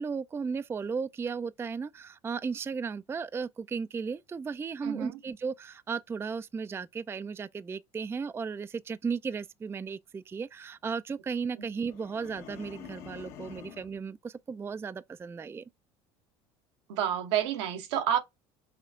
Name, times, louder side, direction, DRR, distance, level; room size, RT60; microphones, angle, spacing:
voice 1, 0.0-15.6, right 5 dB, 15° right, 0.3 m, -35 dB
voice 2, 4.8-5.2 11.6-11.7 16.9-18.2, right 10 dB, 80° right, 1.0 m, -29 dB
sound 1, 11.9-14.0, left 7 dB, 70° left, 1.2 m, -46 dB
5.7 x 2.3 x 3.6 m
hypercardioid pair, 80°, 14 cm